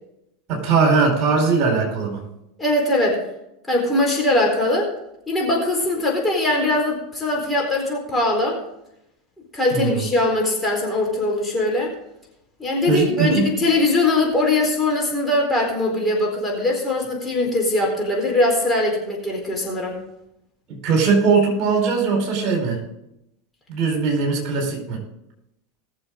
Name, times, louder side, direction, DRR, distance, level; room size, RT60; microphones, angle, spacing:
voice 1, 0.5-2.2 9.7-10.0 12.9-13.4 20.7-22.8 23.7-25.0, right 4 dB, 45° right, 1 dB, 4.5 m, -20 dB
voice 2, 2.6-3.2 3.7-4.9 5.3-8.6 9.5-11.9 12.6-20.0, left 2 dB, 10° left, -2 dB, 4.2 m, -21 dB
20.0 x 7.2 x 3.8 m, 0.82 s
figure-of-eight pair, 80°, 0 cm